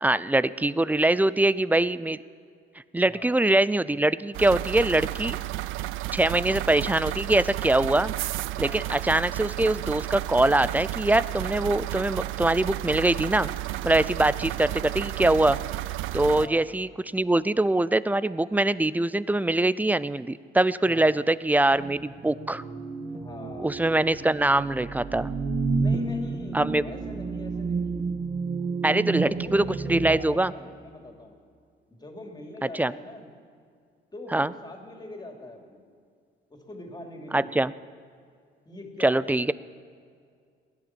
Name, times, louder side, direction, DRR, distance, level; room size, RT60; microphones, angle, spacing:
voice 1, 0.0-2.2 2.9-5.4 6.1-8.1 8.6-13.5 13.8-15.6 16.1-22.6 23.6-25.3 26.5-26.8 28.8-29.6 29.9-30.5 32.7-32.9 34.3-34.5 37.3-37.7 39.0-39.5, right 2 dB, 10° right, 17 dB, 0.4 m, -23 dB
voice 2, 3.0-3.4 6.3-6.6 8.5-8.8 16.3-16.6 20.8-21.2 23.1-23.8 25.8-28.2 29.0-31.4 31.9-33.3 34.1-35.8 36.5-37.6 38.6-39.3, left 1 dB, 20° left, 1 dB, 3.0 m, -42 dB
sound 1, 4.3-16.5, right 17 dB, 85° right, 0.4 m, -32 dB
sound 2, 21.7-30.2, right 4 dB, 35° right, 1.5 m, -31 dB
17.0 x 11.5 x 7.3 m, 2.1 s
cardioid pair, 90°, 20 cm